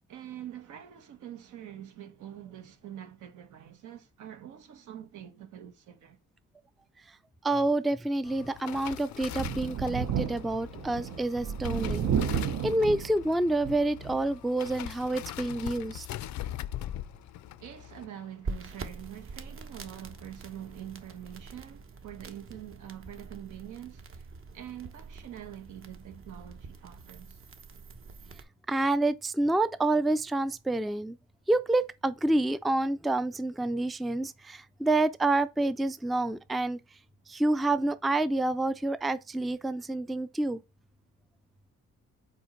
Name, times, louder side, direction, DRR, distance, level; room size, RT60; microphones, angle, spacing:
voice 1, 0.1-6.2 17.6-24.3 24.5-27.4, right 11 dB, 80° right, 1.2 m, -45 dB
voice 2, 7.4-16.1 28.7-31.2 31.5-36.8 37.3-40.6, right 2 dB, ahead, 0.3 m, -28 dB
sound 1, 8.2-19.6 19.9-20.2 20.5-21.0 21.3-21.4, left 13 dB, 70° left, 0.5 m, -42 dB
Thunder, 9.2-14.4 14.8-14.9 16.2-16.3, right 7 dB, 60° right, 0.7 m, -32 dB
sound 2, 18.4-28.4, right 4 dB, 45° right, 1.0 m, -44 dB
5.4 x 4.4 x 4.4 m
cardioid pair, 90°, 30 cm